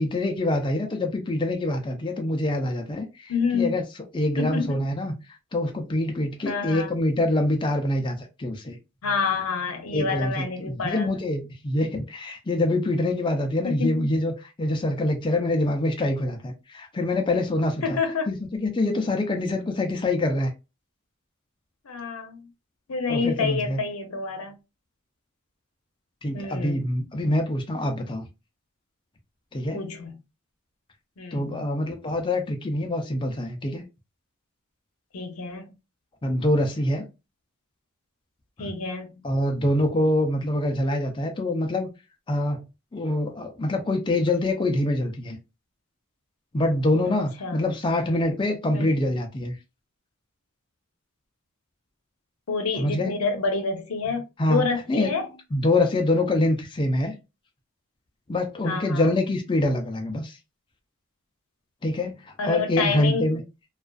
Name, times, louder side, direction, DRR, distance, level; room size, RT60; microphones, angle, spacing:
voice 1, 0.0-3.8 4.1-5.1 5.5-8.8 9.9-18.0 18.3-20.5 23.1-23.8 26.2-28.2 29.5-29.8 31.3-33.8 36.2-37.1 38.6-38.7 39.2-41.9 42.3-42.6 42.9-45.4 46.5-49.6 52.8-53.1 54.4-55.1 55.5-57.1 58.3-60.4 61.8-62.2 62.4-63.4, left 1 dB, 25° left, 0.4 m, -25 dB
voice 2, 3.3-3.7 4.4-5.0 6.5-6.9 9.0-11.1 13.6-14.1 17.8-18.3 21.8-22.5 22.9-24.5 26.3-26.9 29.7-30.2 31.2-31.6 35.1-35.7 38.6-39.2 47.4-47.7 48.7-48.9 52.5-55.3 58.6-59.1 62.4-63.3, left 4 dB, 85° left, 0.6 m, -28 dB
2.4 x 2.3 x 2.2 m
head